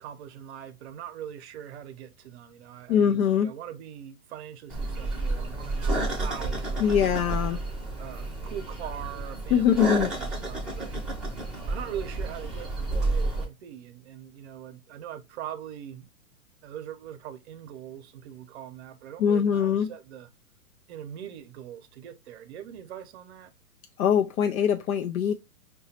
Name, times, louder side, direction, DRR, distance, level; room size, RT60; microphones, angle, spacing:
voice 1, 0.0-7.3 8.0-10.9 11.7-16.1 16.6-20.3 20.9-23.5, right 10 dB, 50° right, 0.7 m, -41 dB
voice 2, 2.9-3.5 6.8-7.6 9.5-10.1 19.2-19.9 24.0-25.3, left 8 dB, 75° left, 0.5 m, -23 dB
sound 1, 4.7-13.5, right 2 dB, ahead, 0.7 m, -31 dB
4.8 x 2.3 x 2.7 m
hypercardioid pair, 130°, 43 cm